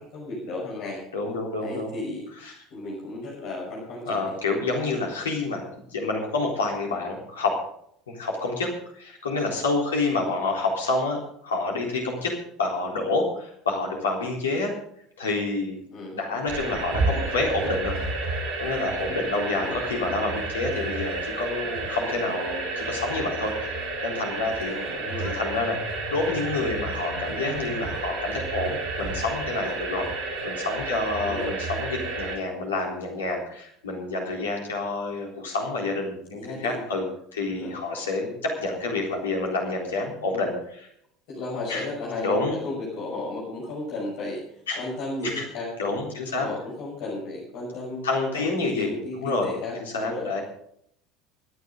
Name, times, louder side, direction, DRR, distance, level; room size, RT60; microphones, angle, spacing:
voice 1, 0.1-1.0 1.6-2.2 2.7-4.3 10.2-10.3 15.9-16.2 19.3-19.7 24.7-25.3 31.2-31.5 36.3-36.8 37.5-37.7 41.3-44.4 44.7-45.7 46.3-50.3, left 2 dB, 60° left, -7 dB, 6.4 m, -34 dB
voice 2, 1.1-1.9 2.4-2.6 4.0-5.6 5.9-7.6 8.1-14.7 15.2-15.8 16.1-18.0 18.6-24.7 25.2-30.1 30.4-37.0 37.3-40.9 41.7-41.8 42.2-42.6 44.7-44.8 45.2-45.4 45.8-46.5 47.7-50.4, left 3 dB, 80° left, 0 dB, 3.8 m, -28 dB
sound 1, 16.5-32.4, right 2 dB, 55° right, 3.3 m, -31 dB
24.0 x 9.5 x 3.8 m, 0.70 s
figure-of-eight pair, 70°, 0 cm